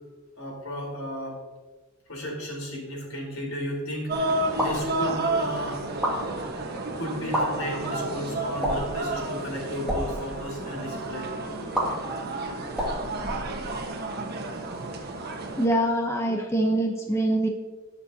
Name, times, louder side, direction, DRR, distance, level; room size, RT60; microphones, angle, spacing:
voice 1, 0.4-1.4 2.1-5.8 7.0-11.3, equal, 75° left, -1 dB, 4.1 m, -34 dB
sound 1, 4.1-15.7, right 2 dB, 50° right, 1.4 m, -31 dB
sound 2, 4.6-4.9 5.9-6.2 7.2-7.4 8.6-9.0 9.7-10.0 11.7-11.8 12.7-13.9, equal, 5° right, 2.5 m, -28 dB
voice 2, 15.6-17.5, right 1 dB, 15° left, 2 dB, 0.9 m, -24 dB
21.0 x 7.1 x 2.9 m, 1.3 s
head